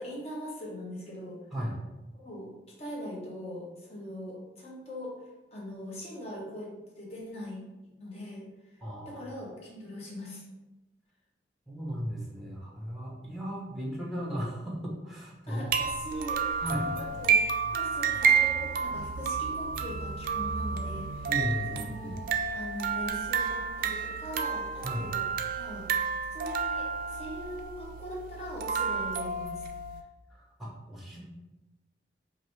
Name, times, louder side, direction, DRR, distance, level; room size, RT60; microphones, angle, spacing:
voice 1, 0.0-1.4 2.1-2.5 2.8-5.1 5.5-6.7 7.0-7.6 8.0-8.4 8.7-10.4 15.5-17.4 17.7-21.3 21.7-25.2 25.6-25.9 26.3-29.6, equal, 35° left, -4 dB, 1.0 m, -41 dB
voice 2, 8.8-9.2 11.7-15.7 16.6-16.9 21.3-22.2 24.8-25.1 30.3-31.3, equal, ahead, -3 dB, 0.7 m, -36 dB
sound 1, 15.7-30.0, right 6 dB, 50° right, 0.3 m, -30 dB
4.7 x 2.6 x 3.0 m, 1.0 s
head